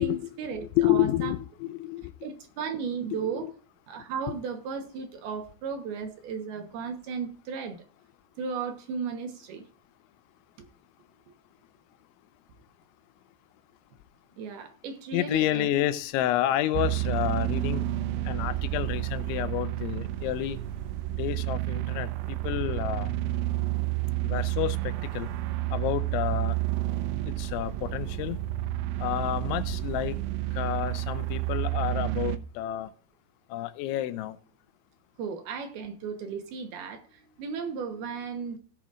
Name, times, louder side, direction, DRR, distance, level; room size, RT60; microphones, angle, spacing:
voice 1, 0.0-1.3 2.2-3.5 3.9-7.8 8.4-9.6 14.4-15.8 35.2-37.0 37.4-38.6, right 6 dB, 70° right, 2.6 m, -35 dB
voice 2, 0.5-2.0 3.4-3.5 15.1-17.8 18.3-20.6 21.1-23.1 24.2-25.3 25.7-26.6 27.3-28.4 29.0-30.2 30.6-32.9 33.5-34.4, left 13 dB, 85° left, 3.0 m, -29 dB
sound 1, 16.7-32.4, right 16 dB, 85° right, 3.1 m, -30 dB
17.0 x 9.0 x 2.5 m
omnidirectional pair, 5.4 m